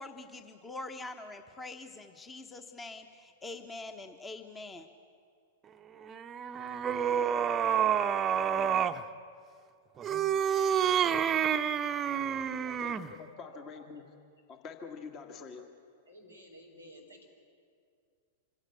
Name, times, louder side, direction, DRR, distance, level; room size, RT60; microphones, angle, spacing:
voice 1, 0.0-4.9, left 2 dB, 15° left, 7 dB, 1.1 m, -44 dB
sound 1, 6.0-9.0 10.0-13.1, right 8 dB, 25° right, 0.7 m, -29 dB
voice 2, 12.5-14.0 14.5-15.6, left 5 dB, 35° left, 5 dB, 1.8 m, -46 dB
voice 3, 13.4-13.8 16.1-17.3, equal, 90° left, 1 dB, 4.4 m, -54 dB
26.0 x 16.0 x 8.3 m, 2.3 s
figure-of-eight pair, 100°, 0 cm